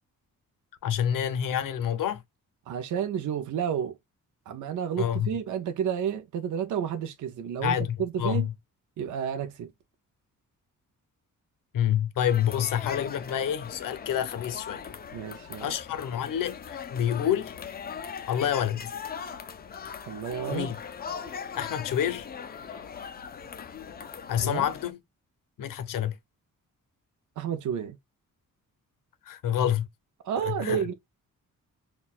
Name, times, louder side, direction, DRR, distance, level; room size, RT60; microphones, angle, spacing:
voice 1, 0.8-2.2 5.0-5.3 7.6-8.5 11.7-14.8 15.6-17.5 18.3-18.9 20.5-20.8 21.5-22.3 24.3-25.0 25.6-26.2 29.3-29.9 30.4-30.9, left 10 dB, 80° left, 0.6 m, -28 dB
voice 2, 2.7-4.0 4.5-8.5 9.0-9.7 15.1-15.8 20.0-20.7 24.4-24.7 27.4-28.0 30.2-30.9, right 8 dB, 65° right, 0.5 m, -31 dB
sound 1, 12.2-24.9, left 7 dB, 30° left, 0.3 m, -40 dB
5.7 x 2.3 x 2.4 m
wide cardioid pair, 170°, 33 cm